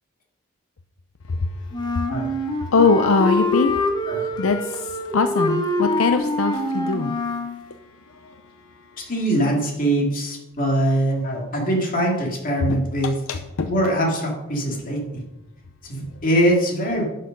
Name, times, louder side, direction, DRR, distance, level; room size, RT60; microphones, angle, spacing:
Wind instrument woodwind instrument, 1.7-7.6, left 1 dB, 20° left, 1.1 m, -25 dB
voice 1, 2.3-3.8 4.4-7.2 8.2-8.3 12.7-12.8 13.3-13.7, left 4 dB, 75° left, 7 dB, 0.6 m, -22 dB
voice 2, 9.1-13.1 13.7-15.2 15.8-17.1, right 1 dB, 45° left, -1 dB, 2.6 m, -22 dB
11.0 x 6.7 x 5.2 m, 0.97 s
head